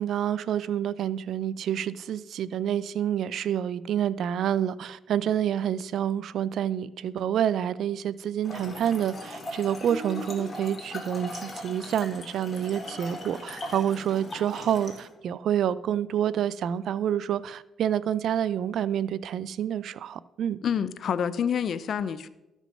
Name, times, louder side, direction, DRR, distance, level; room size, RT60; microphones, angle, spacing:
voice 1, 0.0-20.6, right 9 dB, 70° right, 18 dB, 0.4 m, -28 dB
Trickle dribble / Fill (with liquid), 8.4-15.1, left 1 dB, 30° left, 2.8 m, -39 dB
voice 2, 20.6-22.3, left 8 dB, 60° left, 15 dB, 0.6 m, -27 dB
13.0 x 6.2 x 5.4 m, 0.98 s
cardioid pair, 90°, 0 cm